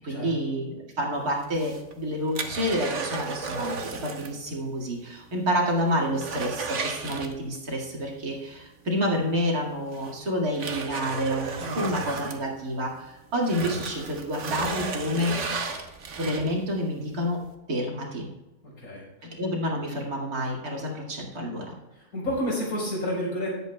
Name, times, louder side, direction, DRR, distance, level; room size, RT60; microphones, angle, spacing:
voice 1, 0.0-15.5 16.2-18.3 19.2-21.8, equal, 75° right, -2 dB, 2.6 m, -29 dB
sound 1, 1.4-4.4 4.7-4.8 5.3-5.4 5.7-7.8 9.2-9.3 9.9-13.0 13.4-16.7 17.2-17.3, right 4 dB, 55° right, 1.3 m, -34 dB
voice 2, 11.6-11.9 18.8-19.1 21.9-23.6, equal, 70° left, -3 dB, 4.6 m, -30 dB
17.5 x 8.1 x 2.3 m, 1.0 s
omnidirectional pair, 1.6 m